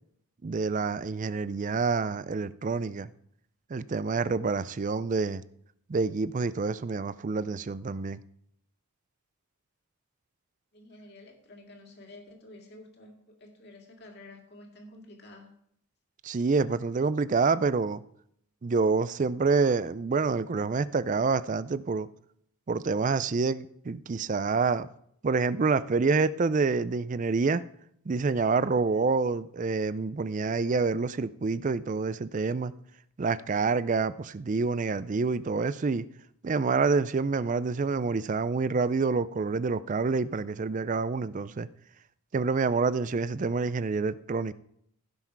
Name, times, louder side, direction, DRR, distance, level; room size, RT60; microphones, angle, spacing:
voice 1, 0.4-3.1 3.7-5.4 5.9-8.2 16.2-18.0 18.6-22.1 22.7-24.9 25.2-27.6 28.1-32.7 33.2-36.0 36.4-41.7 42.3-44.5, right 4 dB, 35° right, 0.4 m, -27 dB
voice 2, 10.7-15.5, left 2 dB, 50° left, 2.2 m, -50 dB
15.5 x 6.0 x 4.6 m
head